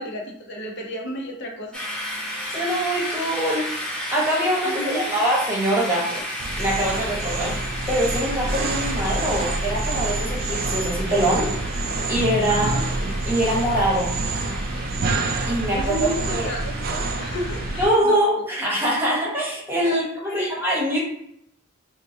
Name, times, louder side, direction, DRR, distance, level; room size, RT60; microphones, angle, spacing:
voice 1, 0.0-1.7 4.6-5.2 12.5-12.8 15.7-18.4 19.8-20.5, left 1 dB, 60° left, -1 dB, 0.7 m, -33 dB
sound 1, 1.7-18.0, equal, 5° left, 0.7 m, -33 dB
voice 2, 2.5-3.6 4.1-6.2 6.6-7.6 7.9-11.8 12.1-12.7 13.0-14.1 15.5-16.5 17.8-21.0, right 1 dB, 10° right, -5 dB, 1.0 m, -23 dB
sound 2, 6.4-17.8, right 2 dB, 50° right, 0.4 m, -27 dB
4.5 x 2.2 x 2.6 m, 0.71 s
head